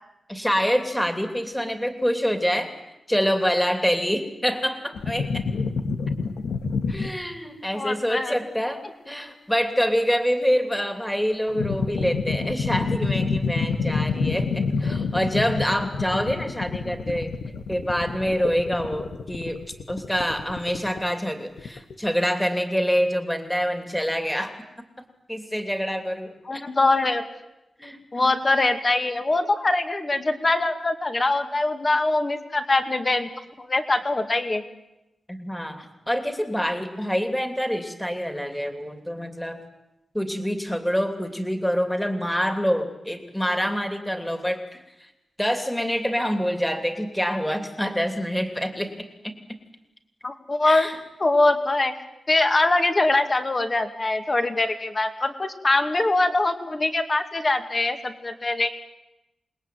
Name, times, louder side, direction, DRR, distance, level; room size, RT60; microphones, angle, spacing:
voice 1, 0.3-2.7 3.1-5.4 6.9-17.3 17.7-19.6 19.9-24.5 25.0-26.6 27.8-28.3 35.3-39.6 40.1-45.1 45.4-48.9 49.2-49.4 50.6-51.0, equal, 5° left, 6 dB, 2.9 m, -26 dB
sound 1, 4.9-7.1 11.5-21.1 21.6-21.9, left 4 dB, 90° left, 1.8 m, -27 dB
voice 2, 7.7-8.4 26.5-27.2 28.1-33.3 33.6-34.6 50.2-50.9 51.2-51.9 52.3-58.7, left 2 dB, 30° left, 7 dB, 2.4 m, -23 dB
28.0 x 21.0 x 9.3 m, 0.92 s
wide cardioid pair, 140°, 0 cm